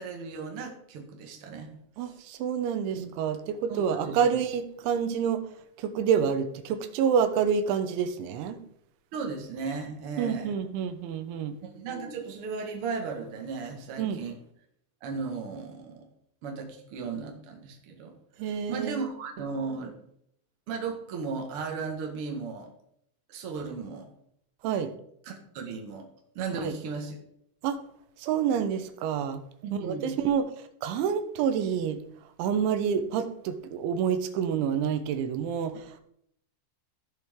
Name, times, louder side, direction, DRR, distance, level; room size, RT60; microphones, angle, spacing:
voice 1, 0.0-1.7 2.0-2.2 2.9-3.1 3.7-4.4 9.1-10.6 11.7-14.4 15.0-16.1 16.4-18.1 18.7-19.9 20.7-22.7 23.3-24.1 25.2-26.1 26.3-27.2 29.6-30.2, right 4 dB, 70° right, 2 dB, 1.3 m, -36 dB
voice 2, 2.0-5.4 5.8-8.6 10.2-11.6 14.0-14.2 18.4-19.1 24.6-24.9 26.6-26.7 27.6-27.8 28.2-29.4 29.7-30.5 30.8-32.0 32.4-36.0, right 7 dB, 90° right, 9 dB, 3.3 m, -28 dB
16.5 x 6.1 x 3.7 m, 0.71 s
omnidirectional pair, 5.2 m